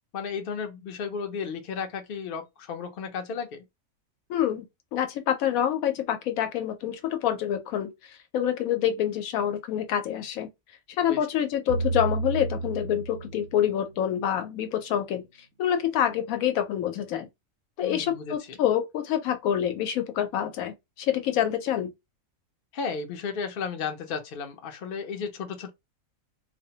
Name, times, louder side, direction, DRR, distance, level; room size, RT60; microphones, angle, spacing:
voice 1, 0.1-3.6 11.1-11.2 17.8-18.3 22.7-25.7, left 5 dB, 60° left, 0.6 m, -34 dB
voice 2, 4.3-4.6 4.9-7.9 8.3-10.5 11.0-15.2 15.6-17.3 17.8-21.9, left 10 dB, 80° left, 1.0 m, -27 dB
sound 1, 11.7-14.1, right 3 dB, 65° right, 0.7 m, -31 dB
2.5 x 2.1 x 2.7 m
omnidirectional pair, 1.4 m